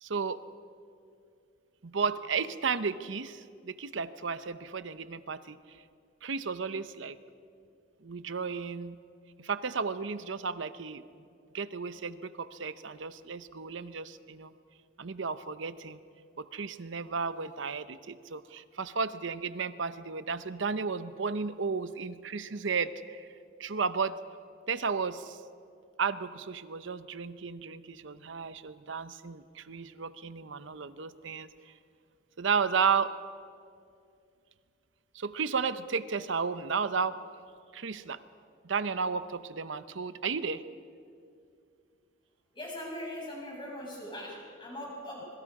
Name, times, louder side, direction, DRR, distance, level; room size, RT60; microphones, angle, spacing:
voice 1, 0.0-0.4 1.8-5.6 6.2-7.2 8.0-9.0 9.4-11.0 11.5-14.5 15.0-16.0 16.4-23.3 23.6-24.2 24.7-25.4 26.0-31.7 32.4-33.2 35.1-37.2 37.7-38.2 38.6-40.6, right 5 dB, 65° right, 13 dB, 0.8 m, -33 dB
voice 2, 42.5-45.3, left 1 dB, 25° left, -4 dB, 7.6 m, -40 dB
26.0 x 22.5 x 4.9 m, 2.4 s
head